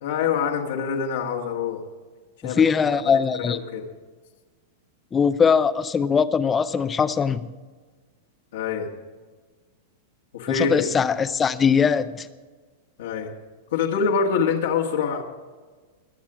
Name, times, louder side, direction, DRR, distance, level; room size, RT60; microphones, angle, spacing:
voice 1, 0.0-1.8 2.4-3.9 8.5-8.9 10.3-10.9 13.0-13.3 13.7-15.2, left 6 dB, 75° left, 1.8 m, -25 dB
voice 2, 2.4-3.6 5.1-7.5 10.5-12.3, left 6 dB, 20° left, 0.6 m, -21 dB
22.0 x 7.4 x 4.9 m
hypercardioid pair, 135°, 0 cm